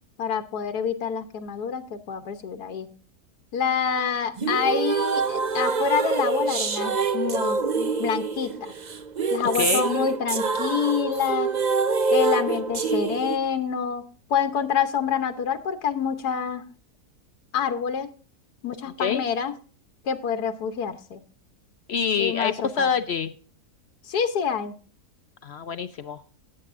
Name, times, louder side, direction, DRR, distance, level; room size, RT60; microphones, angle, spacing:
voice 1, 0.2-2.9 3.5-8.7 9.3-11.5 12.1-14.0 14.3-16.7 17.5-18.1 18.6-19.5 20.0-21.2 22.2-22.9 24.0-24.7, left 7 dB, 85° left, 7 dB, 1.5 m, -27 dB
sound 1, 4.4-13.4, right 4 dB, 45° right, 0.6 m, -25 dB
voice 2, 9.5-9.9 19.0-19.2 21.9-23.3 25.4-26.2, left 6 dB, 65° left, 11 dB, 0.6 m, -26 dB
17.5 x 8.6 x 2.5 m, 0.39 s
omnidirectional pair, 1.7 m